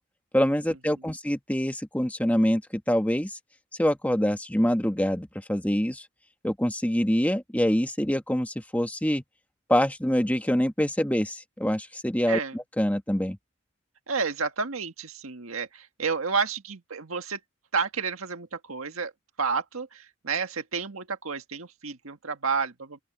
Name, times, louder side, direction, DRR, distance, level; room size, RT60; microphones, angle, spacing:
voice 1, 0.3-3.4 3.8-6.0 6.4-9.2 9.7-13.4, equal, 5° left, 1.5 m, -25 dB
voice 2, 14.1-17.4 17.7-19.1 19.4-23.0, right 5 dB, 85° right, 1.7 m, -30 dB
open air
head